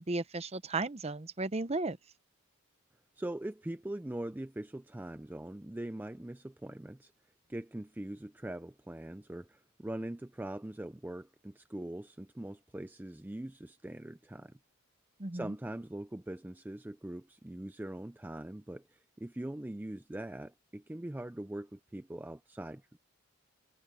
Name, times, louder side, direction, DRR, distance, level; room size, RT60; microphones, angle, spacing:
voice 1, 0.0-2.0 15.2-15.5, right 3 dB, 30° right, 0.8 m, -35 dB
voice 2, 3.2-7.1 7.5-14.6 15.3-22.8, right 1 dB, 10° right, 0.4 m, -42 dB
head